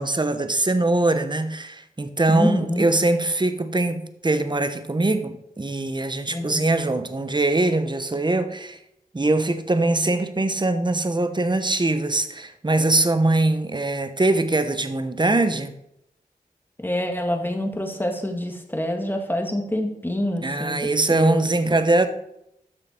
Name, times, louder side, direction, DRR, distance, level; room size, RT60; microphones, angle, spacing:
voice 1, 0.0-8.8 9.1-15.7 20.4-22.1, right 2 dB, 30° right, 1.0 m, -22 dB
voice 2, 2.3-2.9 6.3-6.6 16.8-21.5, left 1 dB, 15° left, 1.9 m, -26 dB
12.5 x 6.8 x 4.5 m
cardioid pair, 55°, 16 cm